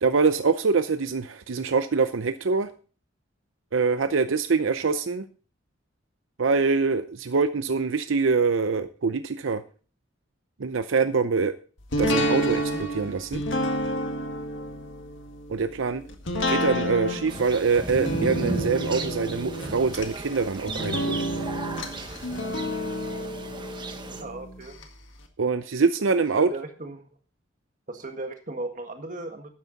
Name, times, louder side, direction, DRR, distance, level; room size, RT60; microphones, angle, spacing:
voice 1, 0.0-2.7 3.7-5.3 6.4-9.6 10.6-11.6 12.0-13.4 15.5-16.0 16.5-21.2 25.4-26.5, right 4 dB, 80° right, 11 dB, 0.6 m, -24 dB
sound 1, 11.9-24.8 25.2-25.3, equal, 75° left, 1.8 m, -30 dB
sound 2, 17.3-24.2, right 2 dB, 25° right, 1.1 m, -36 dB
voice 2, 24.2-24.8 26.4-27.1 27.9-29.5, right 2 dB, 40° right, 5 dB, 1.7 m, -36 dB
12.5 x 9.5 x 4.0 m, 0.38 s
head